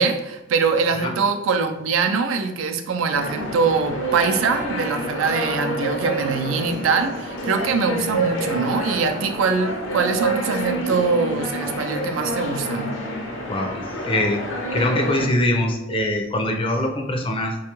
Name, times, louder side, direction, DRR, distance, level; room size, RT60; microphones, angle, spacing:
voice 1, 0.0-13.0, right 5 dB, 90° right, 7 dB, 0.4 m, -23 dB
sound 1, 3.1-15.3, right 1 dB, 75° left, 0.7 m, -28 dB
voice 2, 13.5-14.5 14.7-17.6, left 1 dB, 25° left, 3 dB, 0.4 m, -23 dB
4.3 x 2.3 x 3.0 m, 0.98 s
head